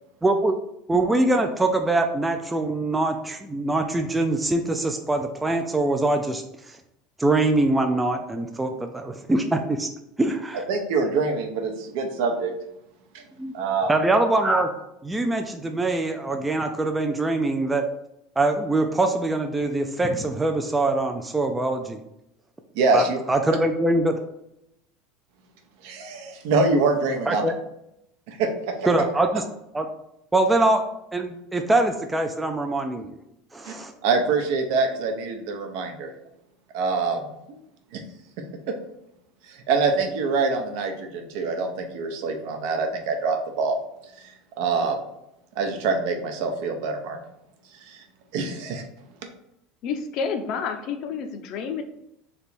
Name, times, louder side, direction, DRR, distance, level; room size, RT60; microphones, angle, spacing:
voice 1, 0.2-0.6 0.9-6.8 7.2-9.9 10.2-10.6 13.4-13.5 13.9-14.7 15.0-17.8 18.4-22.0 22.9-24.1 27.3-27.5 28.9-29.4 29.7-29.8 30.3-30.8 31.1-33.1 33.5-33.9, right 2 dB, 10° right, 4 dB, 0.3 m, -23 dB
voice 2, 10.7-12.5 13.5-13.9 22.7-23.2 25.8-27.5 28.3-28.5 33.6-33.7 34.0-36.1 36.7-37.6 37.9-38.0 39.5-43.8 44.6-45.0 45.6-47.2 47.9-48.0 48.3-48.8, right 4 dB, 70° right, 5 dB, 0.8 m, -25 dB
voice 3, 49.8-51.8, left 6 dB, 50° left, 7 dB, 0.5 m, -29 dB
3.4 x 2.9 x 4.2 m, 0.82 s
supercardioid pair, 145°, 0 cm